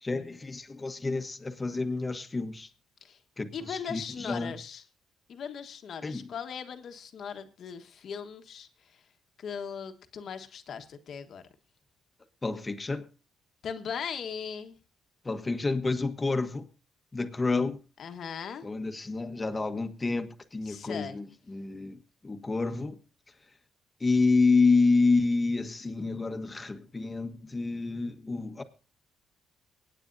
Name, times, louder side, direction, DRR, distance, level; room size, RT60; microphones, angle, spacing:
voice 1, 0.0-2.7 3.4-4.5 6.0-6.3 12.4-13.0 15.2-16.6 17.1-17.8 18.6-22.0 22.2-23.0 24.0-28.6, left 3 dB, 25° left, 1.4 m, -28 dB
voice 2, 3.5-4.8 5.3-9.0 9.4-11.4 13.6-14.8 18.0-18.6 20.6-21.2, left 7 dB, 60° left, 1.4 m, -39 dB
24.5 x 9.1 x 2.7 m
cardioid pair, 90°, 0 cm